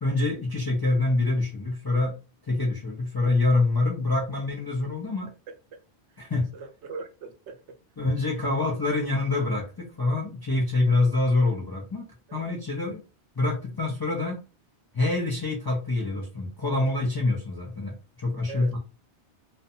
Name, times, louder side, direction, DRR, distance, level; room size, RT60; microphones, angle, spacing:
voice 1, 0.0-2.2 2.4-5.3 6.2-6.5 8.0-12.0 12.3-13.0 13.4-14.4 14.9-18.8, left 2 dB, 35° left, 0.4 m, -26 dB
voice 2, 6.2-7.8 12.3-12.5 18.5-18.7, right 4 dB, 85° right, 0.9 m, -41 dB
2.6 x 2.1 x 2.6 m
omnidirectional pair, 1.1 m